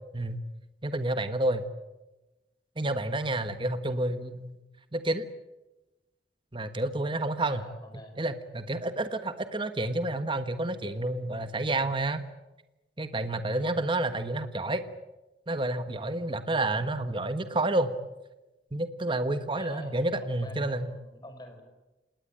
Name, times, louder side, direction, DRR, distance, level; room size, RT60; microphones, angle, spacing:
voice 1, 0.8-1.6 2.8-4.6 4.9-5.2 6.5-7.6 8.2-12.2 13.0-14.8 15.5-18.0 18.7-20.9, right 2 dB, 30° right, 10 dB, 1.3 m, -29 dB
voice 2, 7.4-8.2 11.7-11.9 13.5-13.7 19.5-21.6, left 1 dB, 25° left, 6 dB, 5.6 m, -48 dB
27.5 x 20.0 x 8.9 m, 1.0 s
head